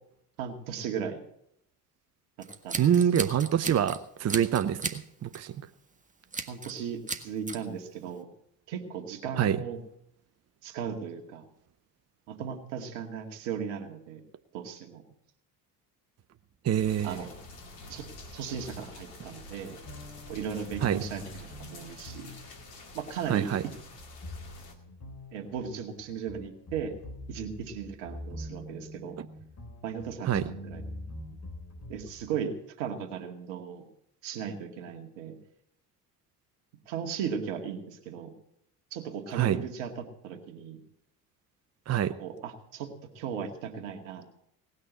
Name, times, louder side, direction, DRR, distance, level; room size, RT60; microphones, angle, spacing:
voice 1, 0.4-1.2 2.4-2.9 6.5-8.3 8.7-9.8 10.6-11.4 12.3-14.2 14.5-15.0 17.0-17.3 17.9-18.1 18.3-19.8 20.3-22.3 22.9-23.7 25.3-26.9 27.3-29.2 29.8-30.8 31.9-33.8 34.2-35.4 36.9-38.3 38.9-40.8 42.2-44.3, right 7 dB, 70° right, 4 dB, 2.2 m, -37 dB
Scissors, 2.4-4.0 4.3-5.0 5.3-5.6 6.3-6.8 7.1-7.6, right 3 dB, 15° right, 1.6 m, -35 dB
voice 2, 2.8-5.5 9.4-9.6 16.6-17.2 20.8-21.0 23.3-23.6 30.2-30.4 39.3-39.6 41.9-42.2, right 9 dB, 35° right, 12 dB, 0.8 m, -26 dB
sound 1, 16.8-24.7, left 2 dB, 80° left, 2.3 m, -47 dB
sound 2, 19.9-32.3, left 1 dB, 35° left, 3.5 m, -44 dB
18.5 x 6.6 x 8.2 m, 0.75 s
hypercardioid pair, 60°, 47 cm